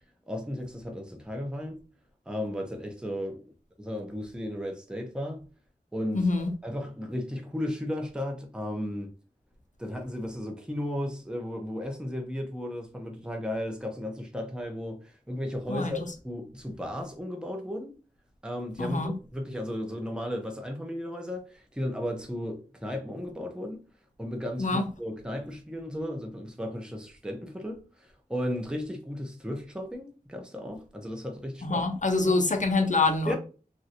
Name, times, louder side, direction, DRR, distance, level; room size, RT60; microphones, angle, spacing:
voice 1, 0.3-1.8 2.3-3.4 3.8-5.4 5.9-6.3 6.6-9.1 9.8-17.9 18.4-23.8 24.2-31.8 32.3-32.4 33.2-33.4, equal, 5° right, 0.7 m, -35 dB
voice 2, 6.1-6.5 15.7-15.9 18.8-19.1 24.6-24.9 31.6-33.4, left 3 dB, 55° left, 0.6 m, -25 dB
3.1 x 2.6 x 2.8 m
wide cardioid pair, 55°, 15 cm